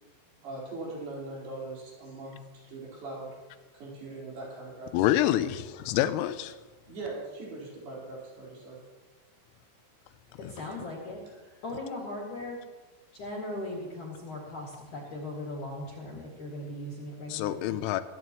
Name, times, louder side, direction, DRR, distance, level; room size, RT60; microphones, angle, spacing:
voice 1, 0.4-3.3 3.7-4.9 5.2-5.3 6.9-8.8 11.2-11.3, right 2 dB, 50° right, 6.2 m, -41 dB
voice 2, 4.9-6.6 10.4-10.5 17.3-18.0, left 13 dB, 90° left, 3.3 m, -27 dB
voice 3, 10.4-11.2 11.6-12.6 13.1-17.8, left 1 dB, 45° left, 3.3 m, -38 dB
24.0 x 11.0 x 3.1 m
omnidirectional pair, 5.7 m